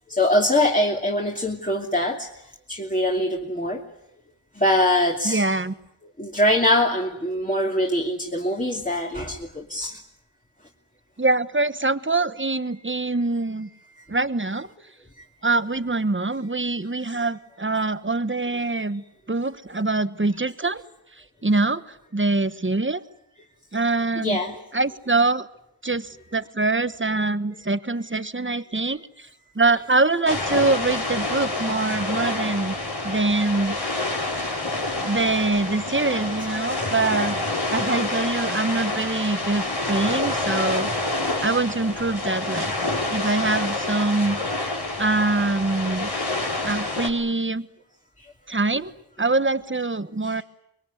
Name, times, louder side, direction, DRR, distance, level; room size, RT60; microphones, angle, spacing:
voice 1, 0.1-2.3 2.7-3.8 4.6-5.5 6.2-10.0 24.2-24.6 34.7-34.8 36.0-36.2 36.8-36.9 38.7-38.8 43.0-43.2 50.2-50.4, left 1 dB, 20° left, -1 dB, 2.9 m, -23 dB
voice 2, 5.2-5.7 11.2-13.7 14.1-14.7 15.4-20.8 21.4-23.0 23.7-24.4 24.7-25.5 25.8-29.3 29.5-32.7 33.0-33.8 35.0-37.4 37.7-40.9 41.4-44.4 45.0-46.1 46.6-47.7 48.5-48.9 49.2-50.4, right 3 dB, 25° right, 13 dB, 1.2 m, -24 dB
sound 1, 30.3-47.1, left 2 dB, 60° left, 4.9 m, -27 dB
25.0 x 22.5 x 9.8 m, 0.79 s
wide cardioid pair, 55°, 43 cm